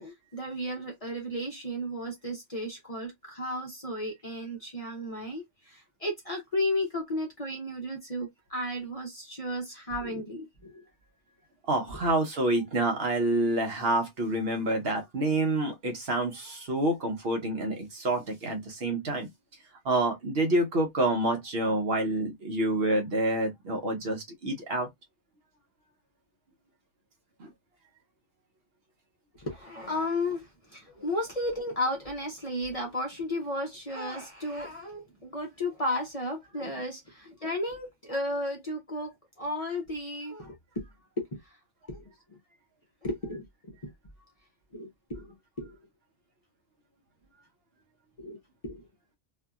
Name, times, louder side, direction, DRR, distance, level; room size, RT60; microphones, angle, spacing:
voice 1, 0.0-10.8 29.4-30.5 30.7-40.8 41.2-41.3 41.9-42.4 43.0-43.9 44.7-45.8 48.2-48.8, left 1 dB, 35° left, 0.7 m, -34 dB
voice 2, 11.7-19.3 19.8-24.9 27.4-27.5 31.0-31.1 36.6-36.7, right 2 dB, 60° right, 0.9 m, -28 dB
2.6 x 2.6 x 2.3 m
omnidirectional pair, 1.2 m